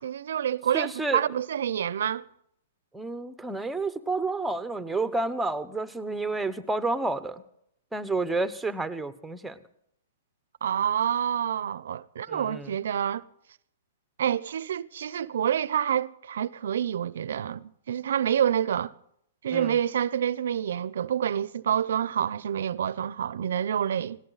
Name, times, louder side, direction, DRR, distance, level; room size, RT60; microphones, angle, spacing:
voice 1, 0.0-2.2 10.6-13.2 14.2-18.9 19.4-24.2, right 9 dB, 75° right, 0.6 m, -27 dB
voice 2, 0.7-1.2 2.9-7.4 7.9-9.6 12.3-12.7 19.5-19.8, right 3 dB, 5° right, 0.9 m, -30 dB
18.5 x 17.5 x 4.1 m
hypercardioid pair, 140°, 0 cm